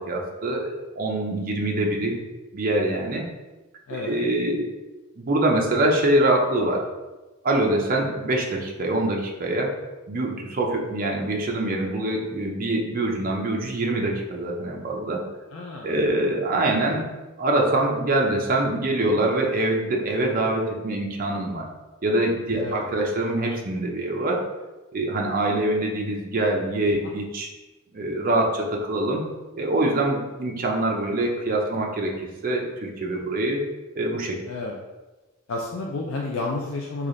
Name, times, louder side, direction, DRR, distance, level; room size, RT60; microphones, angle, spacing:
voice 1, 0.0-2.2 2.5-3.2 3.9-4.7 5.2-6.9 7.4-9.7 10.1-15.2 15.8-17.1 17.4-21.7 22.0-24.4 24.9-27.5 27.9-29.2 29.6-33.6 34.0-34.4, right 1 dB, 45° right, 0 dB, 0.5 m, -24 dB
voice 2, 3.9-4.2 15.5-16.0 22.5-22.8 27.0-27.1 34.5-34.8 35.5-37.1, left 3 dB, 75° left, -1 dB, 0.4 m, -31 dB
3.2 x 2.4 x 3.8 m, 1.1 s
head